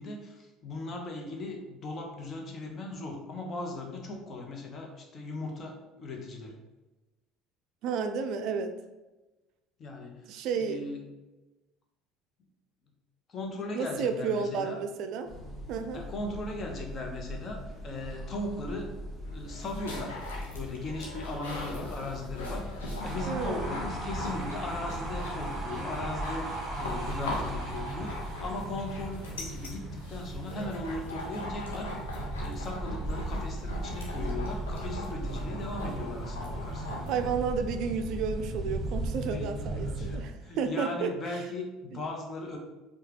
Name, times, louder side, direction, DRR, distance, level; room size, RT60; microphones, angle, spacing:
voice 1, 0.0-6.6 9.8-11.0 13.3-14.8 15.9-18.9 19.3-20.2 20.5-32.1 32.4-36.9 39.3-42.6, left 2 dB, 40° left, 2 dB, 0.8 m, -38 dB
voice 2, 7.8-8.7 10.3-10.8 13.7-15.3 15.7-16.0 23.2-23.8 37.1-41.4, right 5 dB, 60° right, 7 dB, 0.3 m, -32 dB
sound 1, 15.2-25.7, equal, ahead, 1.2 m, -41 dB
sound 2, 19.3-37.3, left 2 dB, 80° left, 0.8 m, -41 dB
sound 3, 23.0-40.2, right 1 dB, 25° right, 1.1 m, -36 dB
4.8 x 2.3 x 2.9 m, 1.1 s
hypercardioid pair, 65°, 0 cm